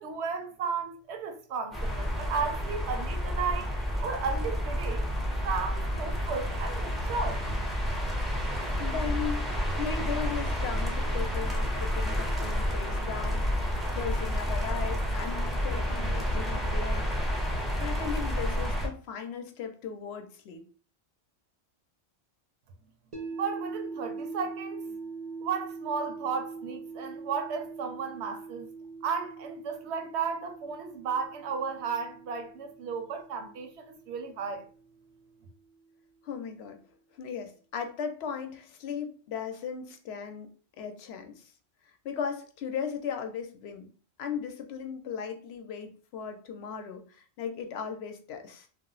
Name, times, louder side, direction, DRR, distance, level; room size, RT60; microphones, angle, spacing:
voice 1, 0.0-3.7 4.0-5.1 5.4-7.4 23.4-24.8 25.4-28.7 29.0-34.6, right 5 dB, 85° right, 0.9 m, -34 dB
sound 1, 1.7-18.9, equal, ahead, 0.4 m, -30 dB
voice 2, 8.8-9.5 9.8-17.5 17.8-20.6 36.2-36.8 37.2-40.5 40.8-41.5 42.0-43.9 44.2-48.7, left 7 dB, 75° left, 0.8 m, -37 dB
sound 2, 23.1-35.2, right 4 dB, 45° right, 0.6 m, -42 dB
2.4 x 2.0 x 3.7 m
omnidirectional pair, 1.1 m